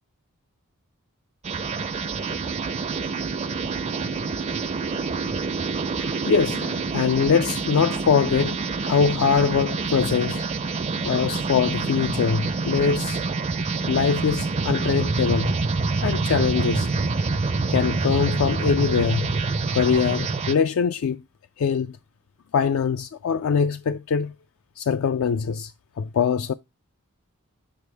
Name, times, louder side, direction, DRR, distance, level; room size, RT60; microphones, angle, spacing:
sound 1, 1.4-20.5, right 3 dB, 30° right, 0.4 m, -26 dB
voice 1, 6.0-10.5 11.0-13.2 13.9-15.5 16.0-16.9 17.7-19.3 19.7-21.2 21.6-22.0 22.5-24.3 24.8-25.7 26.0-26.5, left 6 dB, 65° left, 0.3 m, -23 dB
6.9 x 6.4 x 3.3 m
head